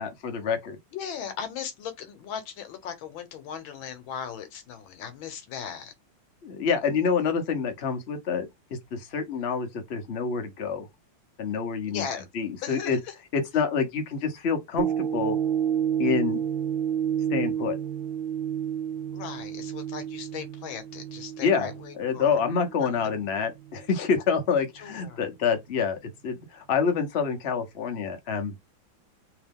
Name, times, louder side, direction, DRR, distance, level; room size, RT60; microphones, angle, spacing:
voice 1, 0.0-0.8 6.4-10.9 11.4-12.1 12.3-13.0 13.3-15.4 16.0-16.4 17.3-17.8 21.4-28.5, left 6 dB, 55° left, 0.7 m, -27 dB
voice 2, 0.9-5.9 11.9-12.3 12.6-13.1 19.1-22.4 22.8-22.9 24.7-25.3, left 7 dB, 70° left, 1.5 m, -38 dB
sound 1, 14.8-23.2 23.7-23.8, right 9 dB, 75° right, 1.2 m, -30 dB
3.5 x 2.9 x 3.5 m
omnidirectional pair, 2.3 m